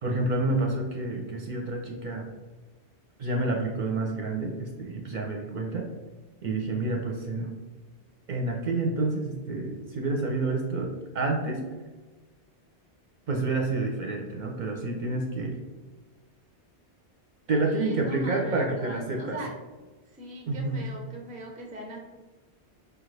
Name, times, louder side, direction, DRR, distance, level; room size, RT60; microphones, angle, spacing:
voice 1, 0.0-2.3 3.2-5.8 6.4-7.5 8.3-11.6 13.3-15.6 17.5-19.4 20.5-20.8, right 2 dB, 55° right, 0 dB, 0.6 m, -29 dB
voice 2, 17.6-19.6 20.1-22.0, right 1 dB, 15° right, 0 dB, 0.3 m, -40 dB
4.6 x 2.5 x 3.2 m, 1.3 s
omnidirectional pair, 1.1 m